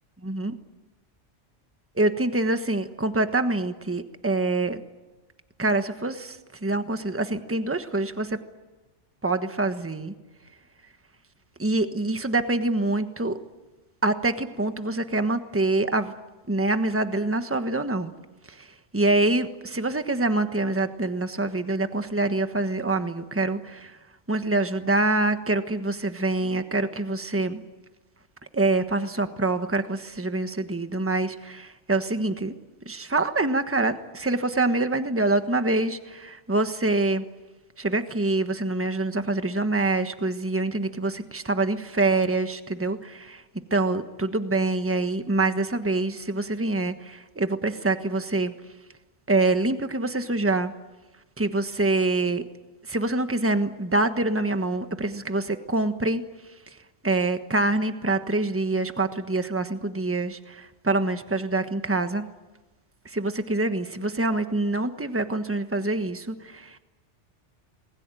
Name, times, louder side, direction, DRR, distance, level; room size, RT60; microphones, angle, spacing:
voice 1, 2.0-4.8 5.6-8.4 9.2-10.1 11.6-13.3 14.0-16.1 16.5-18.1 18.5-18.7 18.9-23.9 24.3-27.6 28.5-32.6 32.8-37.2 37.8-43.4 43.7-48.5 49.3-50.7 51.4-52.4 52.9-56.2 57.0-62.3 63.0-66.8, right 2 dB, 10° right, 8 dB, 1.3 m, -25 dB
28.5 x 21.0 x 9.1 m, 1.1 s
omnidirectional pair, 1.2 m